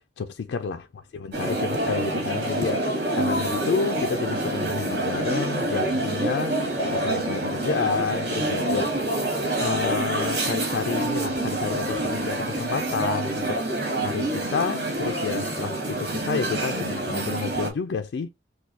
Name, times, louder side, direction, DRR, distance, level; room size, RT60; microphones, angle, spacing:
voice 1, 0.0-6.6 6.8-9.1 9.6-13.6 14.0-18.3, left 5 dB, 90° left, 0.4 m, -30 dB
sound 1, 1.3-17.7, right 1 dB, 65° right, 2.0 m, -27 dB
6.3 x 2.2 x 2.7 m
head